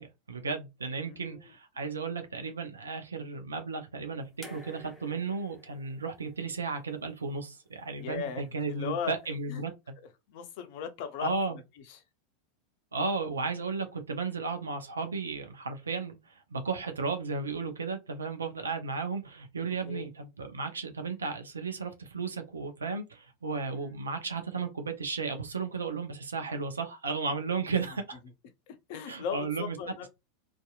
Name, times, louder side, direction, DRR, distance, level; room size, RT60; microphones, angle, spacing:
voice 1, 0.0-9.9 11.2-11.6 12.9-16.2 16.5-28.2 29.1-29.8, right 4 dB, 80° right, 0.5 m, -34 dB
voice 2, 1.0-1.4 8.0-9.2 9.5-9.6 10.3-11.3 11.9-12.0 19.9-20.1 23.7-23.8 28.7-30.1, left 7 dB, 55° left, 0.6 m, -37 dB
sound 1, 4.4-7.6 8.8-8.9, left 2 dB, 10° left, 0.8 m, -52 dB
2.7 x 2.4 x 2.3 m
figure-of-eight pair, 85°, 0 cm